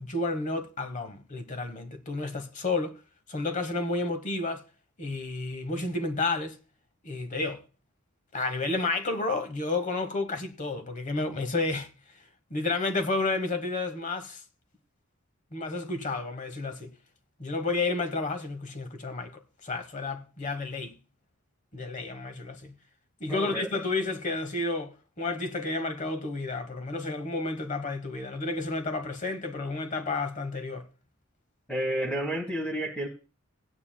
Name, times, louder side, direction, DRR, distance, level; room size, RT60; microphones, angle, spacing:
voice 1, 0.0-3.0 3.3-4.6 5.0-6.6 7.0-7.6 8.3-11.9 12.5-14.4 15.5-16.9 17.4-21.0 21.7-22.8 23.2-30.9, left 3 dB, 35° left, 1.1 m, -31 dB
voice 2, 23.3-23.7 31.7-33.1, right 1 dB, 5° left, 1.4 m, -30 dB
17.0 x 9.5 x 2.2 m
head